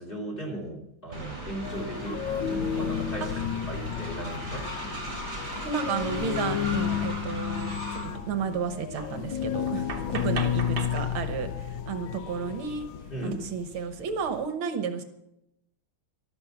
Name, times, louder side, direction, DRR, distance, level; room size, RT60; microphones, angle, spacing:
voice 1, 0.0-5.1 13.1-13.4, right 1 dB, 25° left, 0 dB, 3.0 m, -37 dB
Train, 1.1-8.2, right 1 dB, 35° right, 4.5 m, -38 dB
sound 1, 1.6-14.5, left 8 dB, 70° left, 1.4 m, -32 dB
sound 2, 5.3-5.4 7.0-7.1 7.4-7.6 8.3-8.4 8.9-11.0, right 4 dB, 50° right, 1.9 m, -38 dB
voice 2, 5.6-12.9 13.2-15.0, right 6 dB, 75° right, 8 dB, 1.9 m, -32 dB
14.0 x 12.0 x 5.8 m, 0.84 s
omnidirectional pair, 2.4 m